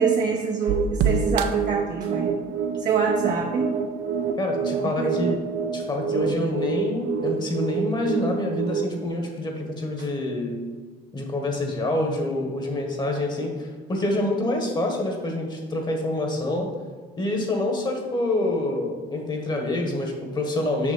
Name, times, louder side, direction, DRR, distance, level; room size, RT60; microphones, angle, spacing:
voice 1, 0.0-2.3 2.8-3.7 4.8-5.1, right 5 dB, 50° right, 0 dB, 0.9 m, -25 dB
sound 1, 0.7-9.1, right 6 dB, 85° right, 0.5 m, -27 dB
voice 2, 4.3-5.4 5.7-10.6 11.1-16.7 17.2-20.9, left 1 dB, 25° left, 2 dB, 1.5 m, -26 dB
6.1 x 5.9 x 4.4 m, 1.5 s
cardioid pair, 110°, 17 cm